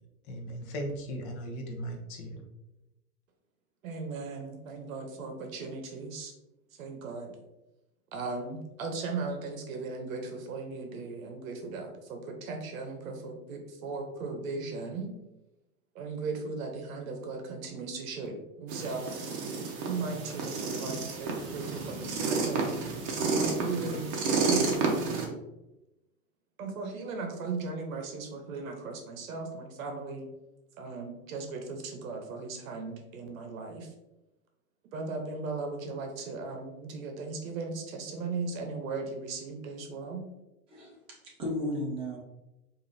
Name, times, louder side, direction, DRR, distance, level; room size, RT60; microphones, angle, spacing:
voice 1, 0.3-2.4, equal, 35° left, 2 dB, 0.7 m, -37 dB
voice 2, 3.8-6.3 6.8-7.4 8.1-15.1 15.9-19.3 19.8-22.7 23.3-24.1 24.5-24.9 26.6-30.3 30.8-33.9 34.9-40.2, right 4 dB, 60° right, 3 dB, 0.9 m, -37 dB
sound 1, 18.7-25.3, right 4 dB, 35° right, 0.8 m, -30 dB
voice 3, 40.7-42.2, left 1 dB, 15° right, -3 dB, 0.4 m, -35 dB
4.8 x 2.7 x 2.6 m, 0.95 s
hypercardioid pair, 130°, 46 cm